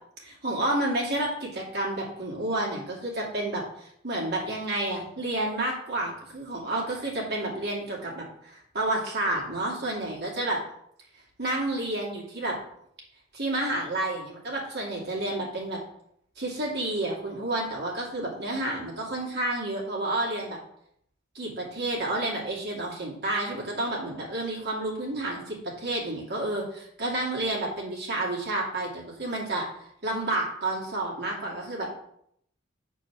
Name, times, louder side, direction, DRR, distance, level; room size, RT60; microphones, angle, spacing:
voice 1, 0.2-10.6 11.4-12.6 13.3-15.8 16.4-20.6 21.3-29.6 30.0-31.9, right 1 dB, 55° right, -3 dB, 2.5 m, -30 dB
7.9 x 4.6 x 6.0 m, 0.72 s
head